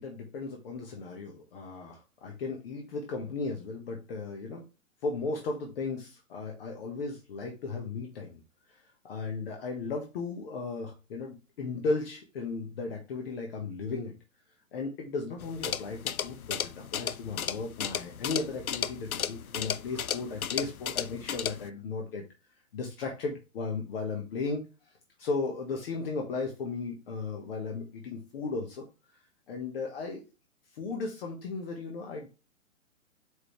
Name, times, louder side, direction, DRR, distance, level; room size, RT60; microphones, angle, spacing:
voice 1, 0.0-4.6 5.0-8.4 8.7-8.8 9.0-14.1 14.7-22.2 22.7-24.6 25.2-28.8 29.5-30.2 30.7-32.3, left 4 dB, 45° left, 1 dB, 1.3 m, -35 dB
sound 1, 15.4-21.7, left 8 dB, 85° left, 0.5 m, -35 dB
7.9 x 3.9 x 3.2 m, 0.30 s
figure-of-eight pair, 120°, 41 cm